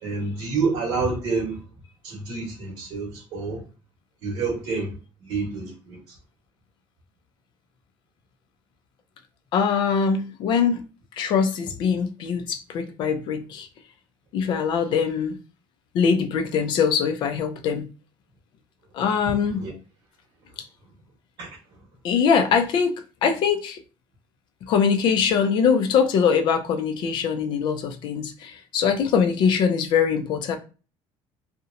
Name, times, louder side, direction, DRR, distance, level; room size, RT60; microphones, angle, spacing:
voice 1, 0.0-1.6 2.0-3.6 4.2-4.9 5.2-6.0 19.6-19.7 21.4-21.5, right 4 dB, 50° right, 0.9 m, -28 dB
voice 2, 9.5-10.8 11.2-13.7 14.3-15.4 15.9-17.9 18.9-19.6 22.0-22.9 23.2-23.8 24.6-30.6, left 6 dB, 45° left, 0.4 m, -22 dB
2.8 x 2.0 x 2.4 m
cardioid pair, 175°, 11 cm